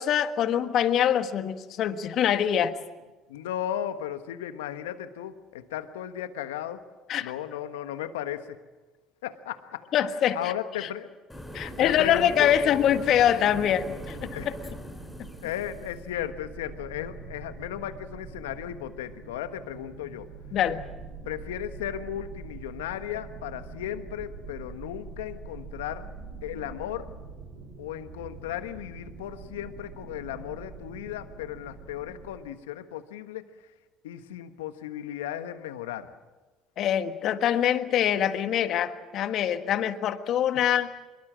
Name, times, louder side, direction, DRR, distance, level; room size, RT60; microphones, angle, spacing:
voice 1, 0.0-2.7 7.1-7.3 9.9-10.4 10.8-10.9 11.5-14.5 20.5-20.8 36.8-40.9, left 10 dB, 60° left, 9 dB, 1.5 m, -24 dB
voice 2, 3.3-6.8 7.2-8.6 9.2-9.8 10.3-11.1 11.6-12.5 14.3-14.5 15.4-20.3 21.2-26.1 26.4-27.1 27.8-33.4 34.0-36.1 40.5-40.8, left 11 dB, 85° left, 10 dB, 1.4 m, -35 dB
sound 1, 11.3-16.1, equal, 10° left, 7.7 m, -41 dB
sound 2, 13.8-32.4, right 4 dB, 80° right, 6.0 m, -44 dB
24.5 x 22.5 x 7.6 m, 1.2 s
hypercardioid pair, 65°, 0 cm